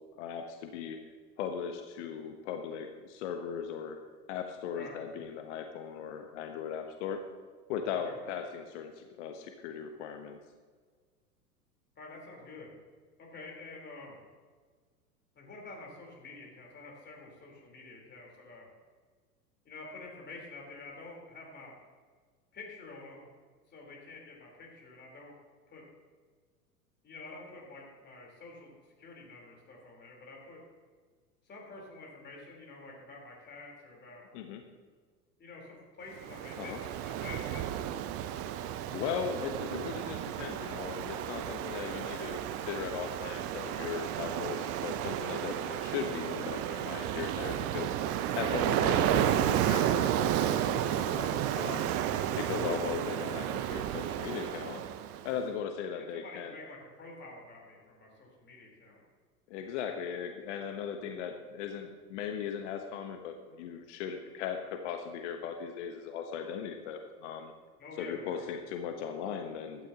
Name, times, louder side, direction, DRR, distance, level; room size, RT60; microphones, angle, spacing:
voice 1, 0.2-1.0 1.4-4.0 4.3-7.2 7.7-10.4 34.3-34.6 36.6-36.8 38.9-47.9 48.4-51.9 52.4-54.8 55.2-56.5 59.5-67.5 68.0-69.9, left 7 dB, 45° left, 6 dB, 1.1 m, -38 dB
voice 2, 12.0-12.8 13.2-14.2 15.3-18.7 19.6-21.7 22.5-23.3 23.7-25.4 25.7-25.8 27.0-28.7 29.0-30.6 31.5-34.3 35.4-37.9 48.9-49.0 56.0-59.0 67.8-68.5, left 3 dB, 20° left, -1 dB, 3.9 m, -48 dB
Ocean, 36.2-55.3, right 11 dB, 30° right, 0.7 m, -32 dB
16.0 x 12.5 x 2.9 m, 1.5 s
figure-of-eight pair, 90°, 47 cm